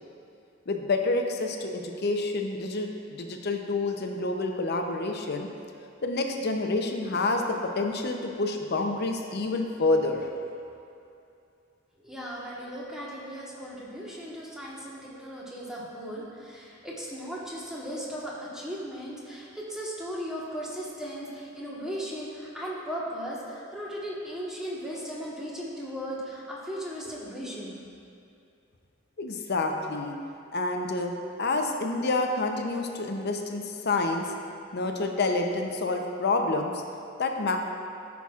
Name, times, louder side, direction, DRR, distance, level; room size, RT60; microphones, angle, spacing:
voice 1, 0.7-5.5 6.0-10.3 29.2-30.2 30.5-31.1 31.4-34.3 34.7-36.7 37.2-37.6, left 2 dB, 55° left, 3 dB, 0.7 m, -28 dB
voice 2, 12.0-27.8, equal, 5° right, -6 dB, 1.3 m, -37 dB
13.0 x 6.0 x 2.4 m, 2.6 s
head